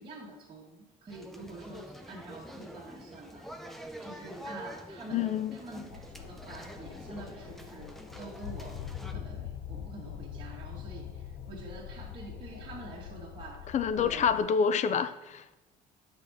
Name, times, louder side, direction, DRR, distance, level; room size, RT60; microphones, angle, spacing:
voice 1, 0.0-3.7 4.0-14.3, right 2 dB, 30° right, -7 dB, 1.7 m, -47 dB
sound 1, 1.1-9.1, equal, ahead, 0.7 m, -46 dB
voice 2, 5.1-5.6 13.7-15.6, left 6 dB, 45° left, 13 dB, 0.5 m, -27 dB
sound 2, 5.9-14.4, left 9 dB, 85° left, 0.6 m, -43 dB
7.8 x 5.6 x 3.5 m, 1.1 s
cardioid pair, 110°, 17 cm